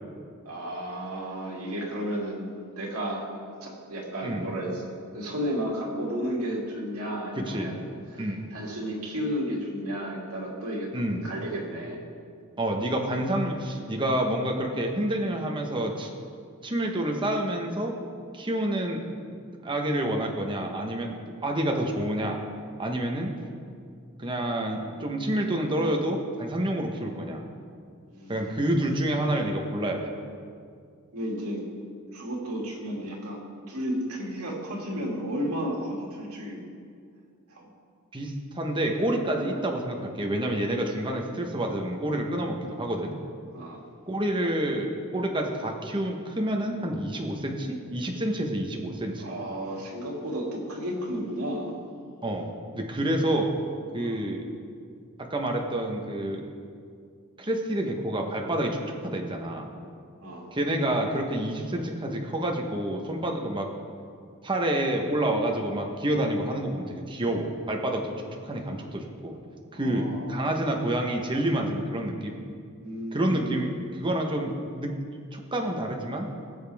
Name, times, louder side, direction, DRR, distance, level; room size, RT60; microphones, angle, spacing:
voice 1, 0.4-2.5 2.8-3.3 3.6-4.8 5.1-7.7 8.1-10.9 11.2-12.0 28.1-28.6 31.1-31.6 32.1-33.4 33.7-36.6 37.5-37.7 43.5-43.8 49.2-51.8 54.0-54.2 60.2-60.5 69.7-70.8 72.8-73.5, equal, 80° right, -3 dB, 2.6 m, -33 dB
voice 2, 7.4-7.7 8.2-8.5 10.9-11.2 12.6-16.1 16.6-17.9 18.3-19.0 19.6-22.4 22.8-23.3 24.2-27.4 28.3-30.1 38.1-43.2 44.1-49.2 52.2-52.5 52.7-53.5 53.9-54.4 55.3-56.4 57.4-58.8 59.0-59.7 60.5-63.7 64.4-68.1 68.4-69.3 69.7-72.4 73.1-75.0 75.3-76.3, right 1 dB, 20° right, 1 dB, 1.1 m, -28 dB
19.5 x 7.4 x 3.5 m, 2.3 s
head